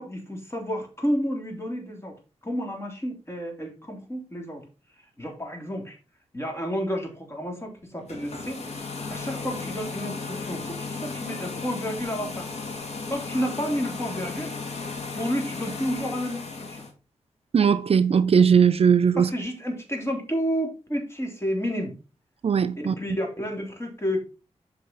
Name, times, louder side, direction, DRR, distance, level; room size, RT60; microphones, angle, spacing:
voice 1, 0.0-2.2 2.4-4.7 4.9-6.0 6.3-12.5 13.1-14.5 15.1-16.8 19.2-21.9 22.8-24.2, equal, 20° left, 3.6 m, -31 dB
sound 1, 8.0-16.9, left 4 dB, 70° left, 2.7 m, -35 dB
voice 2, 17.5-19.3 22.4-22.9, right 7 dB, 60° right, 0.5 m, -19 dB
7.7 x 5.6 x 4.0 m
cardioid pair, 70°, 12 cm